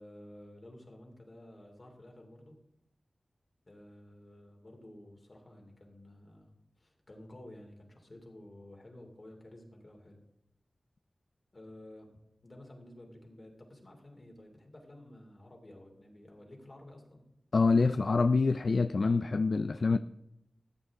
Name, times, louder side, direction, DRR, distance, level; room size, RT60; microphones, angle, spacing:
voice 1, 0.0-2.5 3.6-6.5 6.8-10.2 11.5-17.2, left 1 dB, 50° left, 1 dB, 2.9 m, -52 dB
voice 2, 17.5-20.0, left 4 dB, 70° left, 11 dB, 0.3 m, -26 dB
14.5 x 8.3 x 3.7 m, 0.85 s
wide cardioid pair, 55°, 0 cm